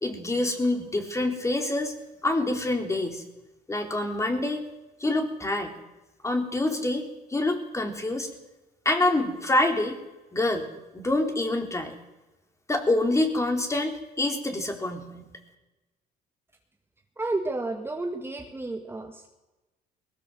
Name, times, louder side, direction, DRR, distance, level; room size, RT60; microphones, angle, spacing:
voice 1, 0.0-2.0 2.2-3.2 3.7-4.7 5.0-5.7 6.2-8.3 8.9-10.0 10.3-10.7 10.9-12.0 12.7-15.3, left 2 dB, 15° left, 4 dB, 3.8 m, -26 dB
voice 2, 17.2-19.3, right 2 dB, 15° right, 3 dB, 2.0 m, -31 dB
20.0 x 17.5 x 7.8 m, 1.0 s
cardioid pair, 110°, 17 cm